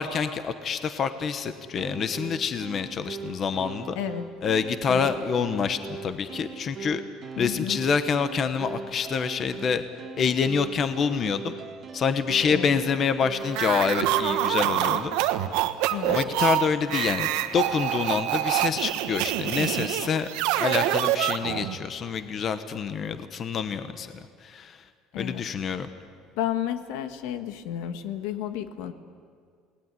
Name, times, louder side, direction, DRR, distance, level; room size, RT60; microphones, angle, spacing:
voice 1, 0.0-4.0 4.4-7.0 7.4-9.8 10.2-11.6 11.9-15.1 16.1-20.3 20.6-24.1 24.4-24.8 25.2-25.9, left 6 dB, 30° left, 10 dB, 1.1 m, -27 dB
sound 1, 1.8-14.6, right 5 dB, 25° right, 1.6 m, -39 dB
voice 2, 4.0-4.3 4.9-5.1 7.4-7.8 12.5-12.7 15.9-16.2 25.1-25.4 26.4-28.9, left 11 dB, 80° left, 9 dB, 1.6 m, -32 dB
sound 2, 13.5-21.8, right 13 dB, 80° right, 1.3 m, -26 dB
29.0 x 19.5 x 9.8 m, 2.1 s
cardioid pair, 160°, 0 cm